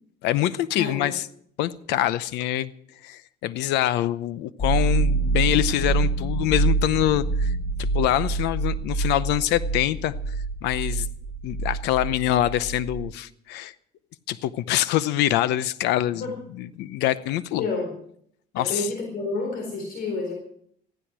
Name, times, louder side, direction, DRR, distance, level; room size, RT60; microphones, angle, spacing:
voice 1, 0.2-1.2 1.6-2.7 3.0-10.1 10.6-11.1 11.4-13.7 14.3-17.7 18.5-18.9, left 13 dB, 90° left, 0.8 m, -25 dB
voice 2, 0.7-1.1 16.1-16.3 17.5-17.9 18.6-20.3, left 3 dB, 65° left, 4.2 m, -29 dB
sound 1, 4.6-13.0, right 3 dB, 35° left, 4.0 m, -26 dB
15.0 x 13.0 x 6.1 m
cardioid pair, 110°, 17 cm